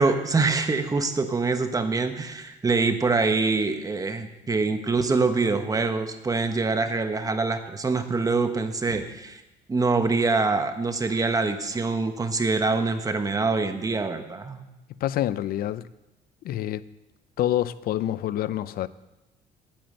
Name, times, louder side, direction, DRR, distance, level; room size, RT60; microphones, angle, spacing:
voice 1, 0.0-9.4 9.7-14.6, right 3 dB, 20° right, 1.2 m, -25 dB
voice 2, 15.0-15.8 16.4-16.8 17.4-18.9, left 12 dB, 60° left, 0.5 m, -27 dB
9.4 x 8.9 x 7.8 m
cardioid pair, 110°, 17 cm